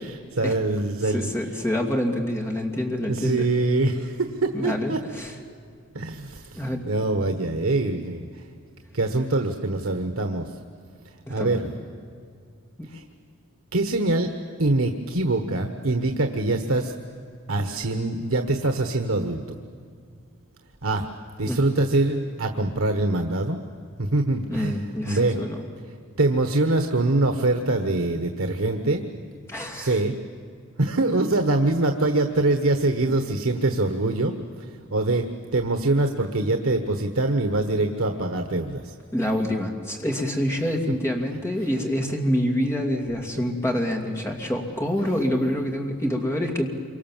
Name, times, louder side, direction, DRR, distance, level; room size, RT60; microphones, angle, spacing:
voice 1, 0.0-1.3 3.1-5.0 5.9-8.3 8.9-10.5 11.3-11.7 12.9-13.0 13.7-14.3 14.6-16.9 17.5-19.6 20.8-21.1 21.4-23.6 24.0-24.7 25.0-25.4 26.2-29.0 29.7-30.1 30.8-34.4 34.9-35.2 35.5-38.9, right 2 dB, 80° right, 5 dB, 1.3 m, -24 dB
voice 2, 1.0-3.5 4.5-5.3 6.5-6.8 11.4-11.7 12.8-12.9 21.5-21.6 24.5-25.6 29.5-30.0 39.1-46.7, equal, 10° left, 2 dB, 2.5 m, -26 dB
27.0 x 24.5 x 7.5 m, 2.2 s
head